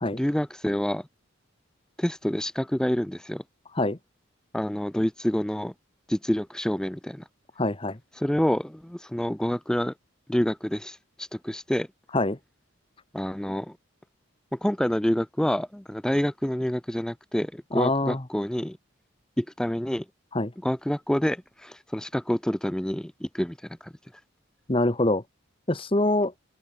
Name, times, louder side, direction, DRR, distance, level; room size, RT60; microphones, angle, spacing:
voice 1, 0.1-1.1 2.0-3.4 4.5-5.7 6.1-7.3 8.1-9.9 10.3-11.9 13.1-13.7 14.5-18.8 19.4-20.1 20.6-24.2, equal, 5° left, 0.3 m, -27 dB
voice 2, 7.6-8.0 12.1-12.4 17.7-18.2 20.3-20.5 24.7-25.2 25.7-26.3, left 2 dB, 25° left, 1.2 m, -24 dB
open air
head